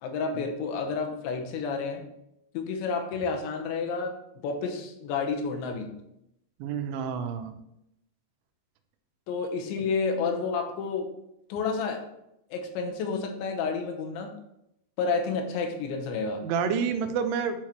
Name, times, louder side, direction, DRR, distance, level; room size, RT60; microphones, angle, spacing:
voice 1, 0.0-2.0 2.5-5.9 9.3-11.1 11.5-12.1 12.5-14.3 15.0-16.5, left 4 dB, 80° left, 4 dB, 3.2 m, -30 dB
voice 2, 6.6-7.6 16.4-17.6, right 6 dB, 85° right, 8 dB, 3.1 m, -29 dB
10.5 x 6.5 x 3.0 m, 0.81 s
omnidirectional pair, 5.3 m